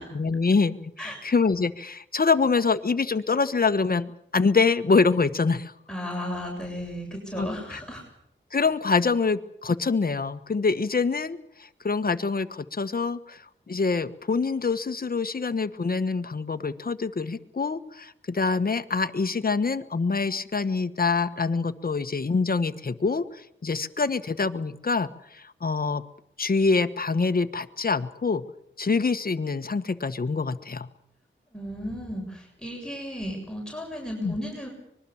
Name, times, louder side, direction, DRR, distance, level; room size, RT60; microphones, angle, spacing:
voice 1, 0.0-5.7 7.4-7.8 8.5-26.0 26.4-28.4 28.8-30.9 34.2-34.3, left 4 dB, 45° left, 10 dB, 1.4 m, -25 dB
voice 2, 5.9-8.0 31.5-34.7, equal, 5° left, -1 dB, 7.5 m, -34 dB
25.0 x 22.0 x 7.3 m, 0.74 s
wide cardioid pair, 75°, 20 cm